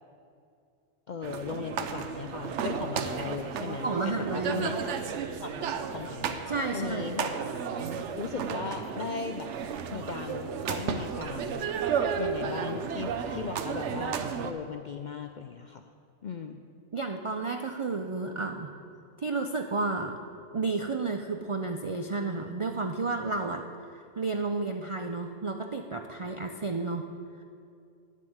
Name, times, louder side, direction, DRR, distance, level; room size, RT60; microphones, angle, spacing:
voice 1, 1.1-4.7 5.4-6.4 6.7-7.3 8.2-9.5 9.9-11.6 12.2-15.8 16.2-16.6, left 5 dB, 60° left, 6 dB, 0.4 m, -37 dB
sound 1, 1.2-14.5, right 6 dB, 70° right, 1.0 m, -33 dB
voice 2, 3.8-4.7 6.5-7.0 16.9-18.7 19.2-20.2 20.5-23.7 23.9-27.1, right 3 dB, 55° right, 4 dB, 0.3 m, -31 dB
9.8 x 7.4 x 7.9 m, 2.4 s
omnidirectional pair, 1.3 m